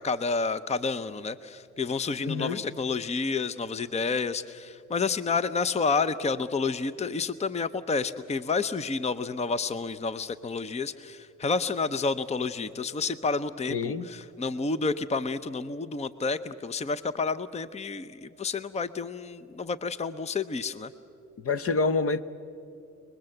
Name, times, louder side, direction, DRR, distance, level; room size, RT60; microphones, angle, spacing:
voice 1, 0.0-20.9, left 4 dB, 20° left, 14 dB, 0.7 m, -30 dB
voice 2, 2.2-2.6 13.7-14.1 21.4-22.2, left 4 dB, 50° left, 14 dB, 1.0 m, -27 dB
29.5 x 21.0 x 7.9 m, 2.8 s
cardioid pair, 90°, 30 cm